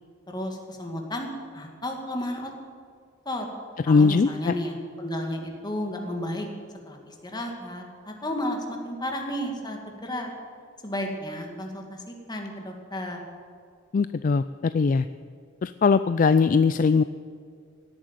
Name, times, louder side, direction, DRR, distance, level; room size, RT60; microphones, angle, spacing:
voice 1, 0.3-2.5 3.3-3.5 3.9-6.5 6.9-10.3 10.8-13.2, left 1 dB, 20° left, 2 dB, 2.3 m, -33 dB
voice 2, 3.9-4.5 13.9-15.1 15.6-17.0, left 4 dB, 45° left, 13 dB, 0.4 m, -20 dB
17.0 x 8.9 x 9.3 m, 2.2 s
head